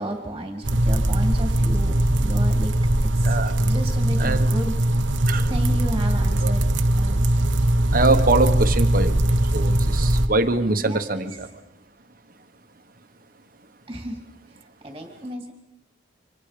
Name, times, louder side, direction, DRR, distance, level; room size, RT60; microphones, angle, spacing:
voice 1, 0.0-2.7 3.1-5.1 5.5-6.7 6.9-7.4 10.8-11.3 13.9-14.2 14.5-15.5, right 1 dB, 20° right, 4 dB, 2.4 m, -33 dB
sound 1, 0.6-10.3, right 1 dB, 75° right, 1.2 m, -20 dB
voice 2, 3.2-3.6 4.2-4.5 5.3-5.5 6.4-6.5 7.4-11.5, right 2 dB, 45° right, 8 dB, 1.3 m, -24 dB
26.5 x 25.0 x 5.1 m, 0.86 s
head